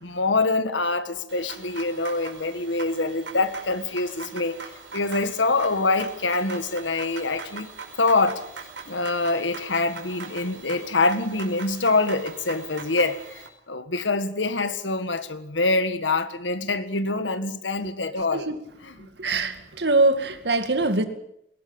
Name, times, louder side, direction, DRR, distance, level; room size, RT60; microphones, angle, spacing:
voice 1, 0.0-4.6 4.9-7.7 8.0-8.4 8.9-18.5 18.8-19.1, left 3 dB, 85° left, 1.7 m, -25 dB
sound 1, 1.3-13.5, right 5 dB, 80° right, 5.2 m, -41 dB
voice 2, 19.2-21.0, right 2 dB, 65° right, 2.3 m, -23 dB
21.0 x 18.5 x 8.9 m
head